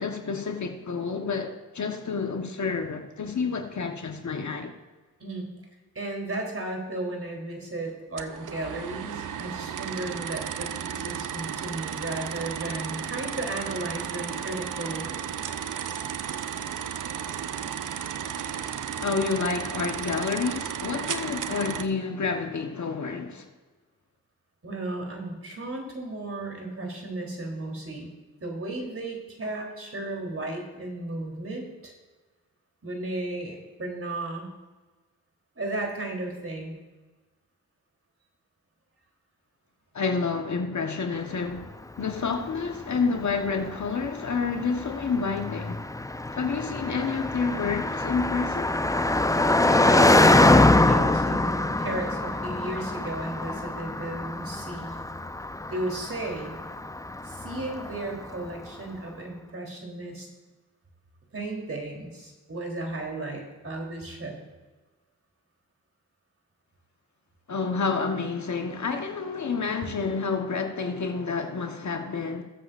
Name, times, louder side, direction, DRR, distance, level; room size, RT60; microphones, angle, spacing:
voice 1, 0.0-4.7 19.0-23.5 39.9-45.8 46.3-48.7 67.5-72.4, left 5 dB, 55° left, 1.4 m, -29 dB
voice 2, 6.0-15.1 24.6-28.1 28.4-31.9 32.8-34.5 35.6-36.8 49.6-50.6 50.9-55.0 55.7-56.6 57.2-60.3 61.3-64.4, right 2 dB, 40° right, 3.6 m, -34 dB
sound 1, 8.2-21.8, right 8 dB, 60° right, 0.7 m, -34 dB
Car passing by, 42.0-58.5, left 2 dB, 10° left, 0.6 m, -24 dB
19.5 x 7.6 x 2.6 m
supercardioid pair, 40°, 35 cm